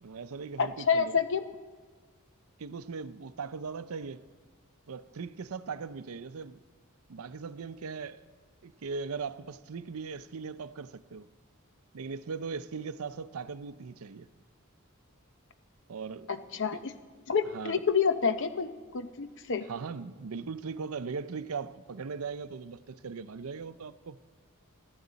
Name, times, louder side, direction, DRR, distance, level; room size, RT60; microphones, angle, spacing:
voice 1, 0.0-1.2 2.6-4.3 4.9-6.6 7.1-8.2 8.6-11.3 11.9-14.3 15.9-16.8 17.5-17.8 19.6-24.2, right 5 dB, 75° right, 0.5 m, -39 dB
voice 2, 0.6-1.4 16.3-16.9 17.3-19.7, left 6 dB, 60° left, 0.8 m, -28 dB
24.0 x 14.0 x 4.0 m
head